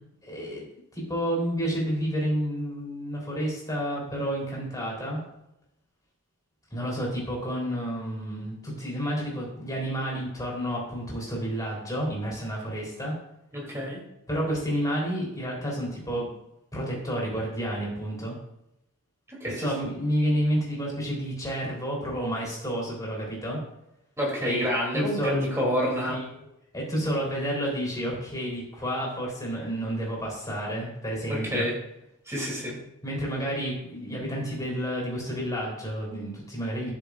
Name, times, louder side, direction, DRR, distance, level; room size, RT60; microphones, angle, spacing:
voice 1, 0.2-0.6 0.9-5.2 6.7-13.1 14.3-16.3 16.7-18.4 19.6-23.6 24.4-24.7 24.9-25.4 26.1-26.4 26.7-31.7 33.0-36.9, equal, 15° left, -3 dB, 3.5 m, -30 dB
voice 2, 13.5-14.0 19.3-19.7 24.2-26.2 31.3-31.7 32.3-32.8, equal, 15° right, -3 dB, 2.8 m, -28 dB
12.5 x 6.6 x 2.5 m, 0.83 s
head